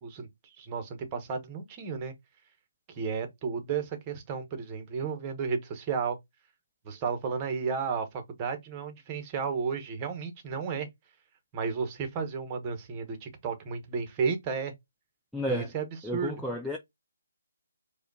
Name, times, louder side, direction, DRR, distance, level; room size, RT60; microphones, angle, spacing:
voice 1, 0.0-2.1 2.9-6.2 6.8-10.9 11.5-14.7 15.5-16.3, right 5 dB, 20° right, 1.2 m, -33 dB
voice 2, 15.3-15.7 16.0-16.8, equal, ahead, 0.4 m, -31 dB
4.9 x 2.5 x 4.1 m
figure-of-eight pair, 155°, 0 cm